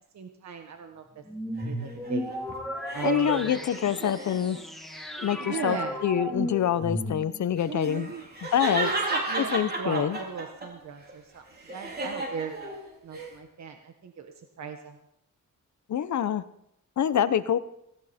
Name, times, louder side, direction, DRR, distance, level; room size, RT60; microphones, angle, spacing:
voice 1, 0.1-1.2 1.6-2.3 2.9-3.5 5.4-6.0 7.6-8.2 8.7-11.4 11.7-15.0, right 6 dB, 60° right, 5 dB, 1.4 m, -37 dB
sound 1, 1.3-7.6, equal, ahead, 2.0 m, -35 dB
sound 2, 1.6-4.6 5.2-5.8 7.6-10.7 11.1-13.3, right 2 dB, 30° right, 3.5 m, -33 dB
voice 2, 3.0-4.6 5.2-8.1 8.5-8.9 9.4-10.2 15.9-16.4 17.0-17.6, left 9 dB, 65° left, 14 dB, 0.9 m, -26 dB
18.0 x 17.0 x 4.4 m, 0.77 s
wide cardioid pair, 145°, 31 cm